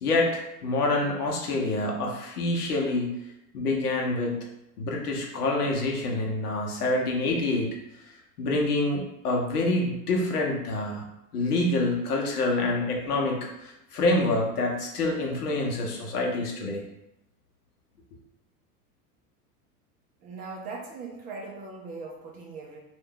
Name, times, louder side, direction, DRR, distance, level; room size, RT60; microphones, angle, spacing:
voice 1, 0.0-3.1 3.5-4.4 4.8-7.7 8.4-11.0 11.3-16.8, left 2 dB, 75° left, -1 dB, 0.9 m, -26 dB
voice 2, 20.2-22.8, right 4 dB, 20° right, -1 dB, 0.3 m, -39 dB
2.6 x 2.3 x 3.6 m, 0.88 s
figure-of-eight pair, 85°, 47 cm